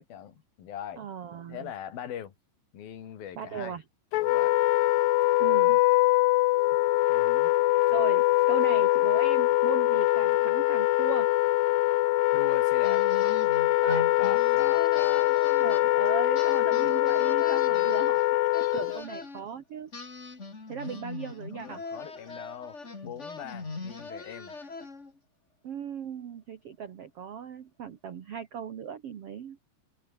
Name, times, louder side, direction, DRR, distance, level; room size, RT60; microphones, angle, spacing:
voice 1, 0.0-1.0 1.5-2.3 2.7-3.8 4.1-4.6 7.1-7.5 12.3-13.1 13.9-15.4 17.7-18.1 21.5-22.8 23.0-24.5, left 10 dB, 60° left, 4.3 m, -41 dB
voice 2, 1.0-1.7 3.3-3.8 5.4-5.8 7.9-11.3 13.8-14.0 15.6-19.9 20.7-21.8 25.6-29.6, right 7 dB, 75° right, 1.3 m, -37 dB
Wind instrument woodwind instrument, 4.1-19.0, left 18 dB, 85° left, 2.0 m, -23 dB
sound 1, 12.8-16.1 16.3-19.4 19.9-25.2, left 3 dB, 20° left, 2.1 m, -41 dB
omnidirectional pair, 5.0 m